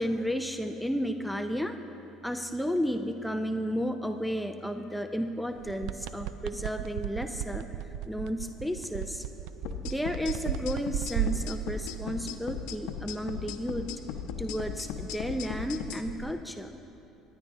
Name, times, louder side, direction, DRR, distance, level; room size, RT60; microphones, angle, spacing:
voice 1, 0.0-1.7 2.2-7.7 8.1-9.3 9.8-13.9 14.4-16.8, equal, ahead, 6 dB, 0.5 m, -32 dB
sound 1, 5.6-12.1 16.0-16.3, right 11 dB, 75° right, 0.3 m, -36 dB
sound 2, 9.6-16.0, left 7 dB, 80° left, 0.7 m, -37 dB
18.0 x 10.5 x 3.6 m, 3.0 s
supercardioid pair, 90°, 0 cm